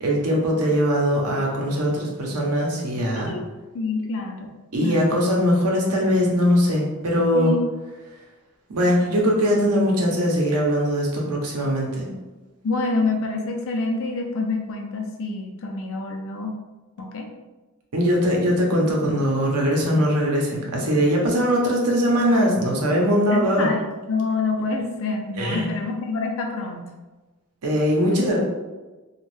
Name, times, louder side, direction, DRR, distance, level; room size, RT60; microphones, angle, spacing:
voice 1, 0.0-3.3 4.7-7.5 8.7-12.1 17.9-23.7 25.4-25.7 27.6-28.4, equal, 85° right, -1 dB, 0.8 m, -21 dB
voice 2, 3.1-3.5 3.7-4.5 4.8-5.1 7.3-7.6 12.6-16.6 17.0-17.3 23.3-23.8 24.1-26.9 28.1-28.2, left 3 dB, 65° left, 2 dB, 0.5 m, -27 dB
2.6 x 2.3 x 3.2 m, 1.2 s
head